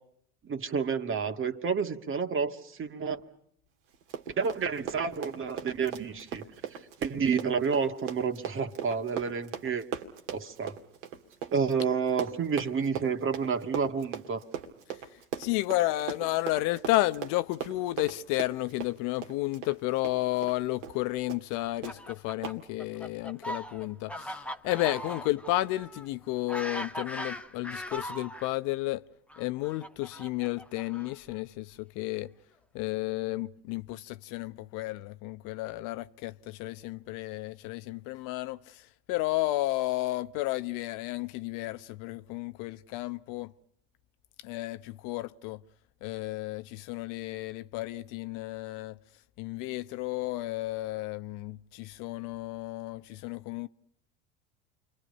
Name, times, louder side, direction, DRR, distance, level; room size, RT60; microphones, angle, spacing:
voice 1, 0.4-3.2 4.4-6.4 6.7-9.9 10.3-10.8 11.5-14.4, right 5 dB, 35° right, 2.1 m, -30 dB
Run, 3.9-20.6 20.8-21.0 21.3-21.5 21.8-21.9 22.4-22.6, right 9 dB, 80° right, 2.4 m, -39 dB
voice 2, 14.9-29.1 29.4-32.3 32.7-43.5 44.4-45.6 46.0-49.0 49.4-53.7, left 18 dB, 60° left, 0.9 m, -32 dB
Fowl, 21.6-28.5 29.3-31.3, equal, 5° left, 1.4 m, -40 dB
29.5 x 24.5 x 5.4 m
hypercardioid pair, 75°, 35 cm